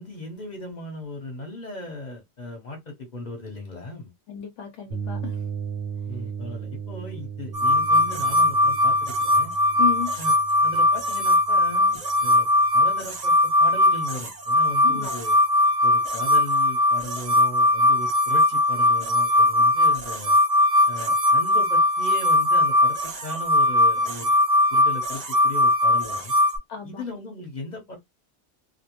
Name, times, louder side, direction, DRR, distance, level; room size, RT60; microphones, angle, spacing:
voice 1, 0.0-4.1 6.1-9.5 10.2-10.4 10.6-12.5 12.7-15.3 15.8-20.4 20.9-24.3 24.7-26.3 26.8-28.0, left 2 dB, 40° left, 1.0 m, -37 dB
voice 2, 4.3-5.4 9.8-10.1 14.8-15.1 26.7-27.0, left 9 dB, 85° left, 1.0 m, -32 dB
sound 1, 4.9-12.6, right 7 dB, 75° right, 1.0 m, -36 dB
sound 2, 7.5-26.6, left 1 dB, 45° right, 0.6 m, -20 dB
2.4 x 2.0 x 2.9 m
omnidirectional pair, 1.3 m